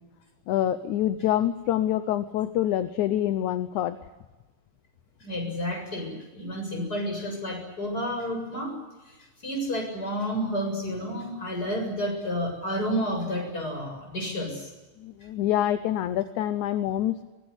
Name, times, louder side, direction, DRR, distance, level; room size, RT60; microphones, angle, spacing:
voice 1, 0.5-4.0 15.0-17.2, left 12 dB, 70° left, 11 dB, 2.2 m, -26 dB
voice 2, 5.2-8.8 9.4-14.7, equal, 25° left, 3 dB, 7.9 m, -30 dB
23.5 x 20.0 x 9.7 m, 1.1 s
omnidirectional pair, 3.8 m